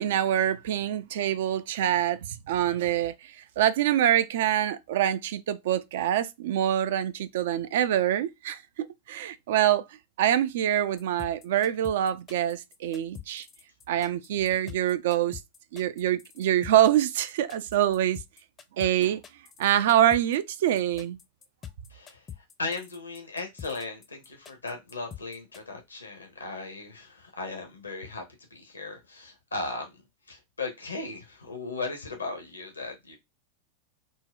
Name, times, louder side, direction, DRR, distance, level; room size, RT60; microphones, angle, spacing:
voice 1, 0.0-9.8 10.2-13.5 13.9-15.4 15.7-18.2 18.8-19.2 19.6-21.2, right 11 dB, 55° right, 0.3 m, -25 dB
sound 1, 11.0-25.6, left 9 dB, 25° left, 0.5 m, -44 dB
voice 2, 21.9-22.2 22.6-28.2 28.5-29.9 30.3-33.2, left 3 dB, 75° left, 0.7 m, -37 dB
3.9 x 2.1 x 2.3 m
figure-of-eight pair, 90°, 0 cm